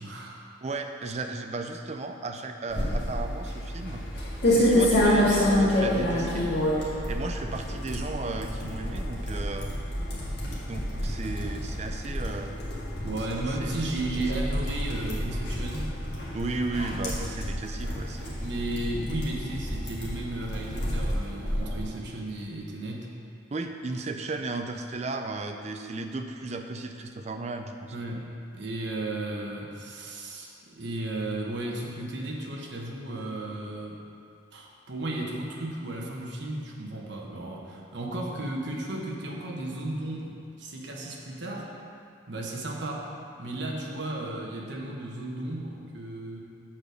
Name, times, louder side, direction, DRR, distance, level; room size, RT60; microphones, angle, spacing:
voice 1, 0.0-0.4 13.0-16.0 18.4-23.1 27.9-28.3 28.5-34.0 34.5-41.7 42.3-43.1 43.4-46.4, right 1 dB, 60° right, -1 dB, 1.1 m, -34 dB
voice 2, 0.6-4.0 4.4-6.5 7.1-9.7 10.7-12.6 13.3-14.2 16.3-18.4 23.5-28.0, right 3 dB, 35° right, 5 dB, 0.4 m, -35 dB
sound 1, 2.7-21.8, left 1 dB, 55° left, 1.8 m, -28 dB
7.2 x 4.9 x 6.5 m, 2.5 s
head